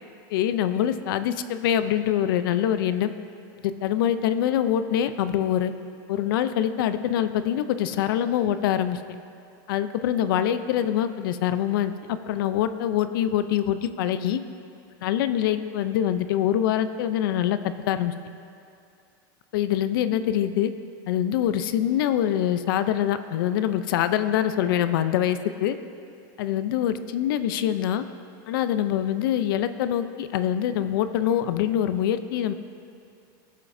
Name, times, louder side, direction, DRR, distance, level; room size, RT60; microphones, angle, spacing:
voice 1, 0.3-3.1 3.6-5.7 6.1-9.0 9.7-14.4 15.0-18.1 19.5-20.7 21.1-25.8 26.4-28.0 28.5-32.5, left 10 dB, 75° left, 11 dB, 0.5 m, -24 dB
18.5 x 7.5 x 2.7 m, 2.5 s
supercardioid pair, 150°, 11 cm